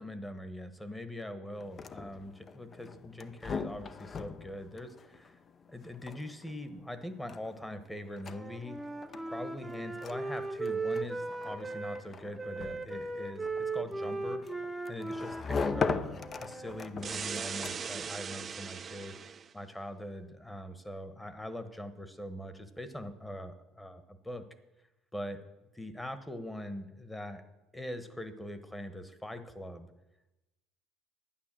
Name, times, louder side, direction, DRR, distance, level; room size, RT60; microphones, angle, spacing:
voice 1, 0.0-5.4 5.7-8.8 9.2-14.5 14.9-19.2 19.5-24.4 25.1-25.4 25.7-27.4 27.7-29.9, left 1 dB, 10° left, 11 dB, 1.2 m, -42 dB
sound 1, 1.6-18.1, left 5 dB, 35° left, 0.6 m, -40 dB
Wind instrument woodwind instrument, 8.2-12.0 12.4-16.9, right 3 dB, 5° right, 1.0 m, -38 dB
sound 2, 17.0-19.5, right 6 dB, 35° right, 0.5 m, -39 dB
11.5 x 9.4 x 7.6 m, 1.0 s
cardioid pair, 115°, 0 cm